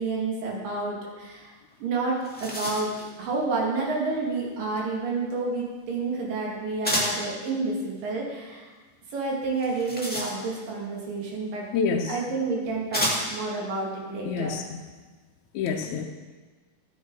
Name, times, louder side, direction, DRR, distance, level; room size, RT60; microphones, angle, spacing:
voice 1, 0.0-1.5 1.8-2.9 3.2-8.7 9.1-11.7 12.1-14.6, right 3 dB, 70° right, -2 dB, 3.8 m, -29 dB
sound 1, 1.7-1.8 2.1-3.1 6.8-7.3 9.5-10.7 11.8-11.9 12.9-13.5, equal, 5° left, 1.1 m, -30 dB
voice 2, 11.7-12.2 14.3-14.8 15.5-16.1, left 5 dB, 75° left, 1 dB, 1.8 m, -27 dB
13.5 x 9.3 x 4.7 m, 1.3 s
omnidirectional pair, 4.1 m